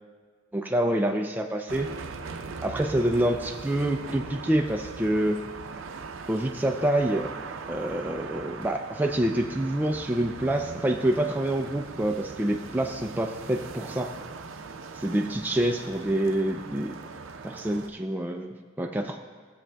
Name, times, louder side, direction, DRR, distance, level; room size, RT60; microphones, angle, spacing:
voice 1, 0.5-1.9 2.6-5.4 6.3-7.3 7.7-14.1 15.0-17.0 17.4-19.2, right 1 dB, 10° right, 2 dB, 0.4 m, -27 dB
sound 1, 1.7-17.9, right 4 dB, 75° right, 0.5 m, -40 dB
18.0 x 7.3 x 2.3 m, 1.5 s
head